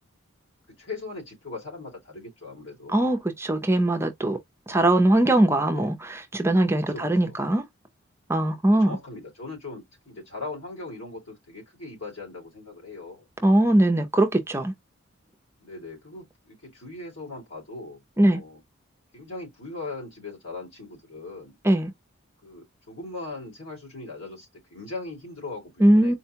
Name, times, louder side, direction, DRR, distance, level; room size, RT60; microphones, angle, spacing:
voice 1, 0.8-3.0 5.6-5.9 6.9-7.4 8.6-13.3 15.6-18.6 19.1-21.6 22.4-26.2, left 3 dB, 85° left, 2.3 m, -39 dB
voice 2, 2.9-4.4 4.7-7.6 8.3-9.0 13.4-14.7 18.2-18.4 21.6-21.9 25.8-26.1, right 1 dB, 10° right, 0.5 m, -21 dB
4.3 x 2.1 x 2.8 m
head